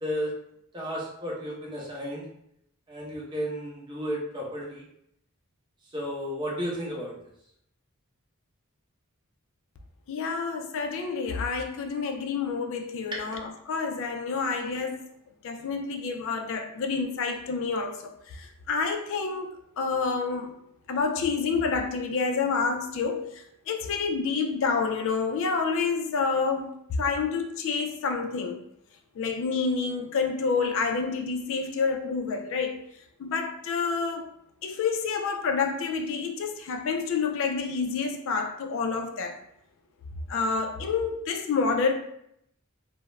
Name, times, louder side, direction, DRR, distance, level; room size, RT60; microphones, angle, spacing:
voice 1, 0.0-0.3 0.7-2.3 2.9-4.9 5.9-7.1 13.1-13.2, equal, 20° right, -5 dB, 0.7 m, -33 dB
voice 2, 10.1-15.0 15.4-20.5 20.9-28.6 29.2-32.8 33.2-34.4 34.6-39.4 40.3-41.9, left 5 dB, 65° left, 4 dB, 0.3 m, -28 dB
2.3 x 2.0 x 3.0 m, 0.73 s
head